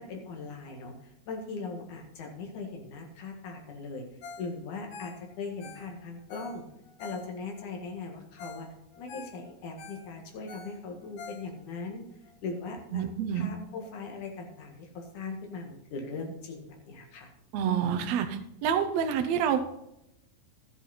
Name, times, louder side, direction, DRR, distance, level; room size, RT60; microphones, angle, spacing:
voice 1, 0.0-4.0 4.4-6.6 7.0-8.7 9.0-12.0 12.4-13.0 13.3-17.3, left 4 dB, 60° left, 2 dB, 3.1 m, -39 dB
Ringtone, 4.2-4.5 4.8-7.6 8.1-8.2 8.4-8.7 8.9-11.8 12.3-12.4, left 4 dB, 90° left, 3.5 m, -46 dB
voice 2, 12.9-13.5 17.5-19.7, right 8 dB, 75° right, 7 dB, 1.6 m, -28 dB
13.0 x 8.1 x 4.2 m, 0.83 s
omnidirectional pair, 4.1 m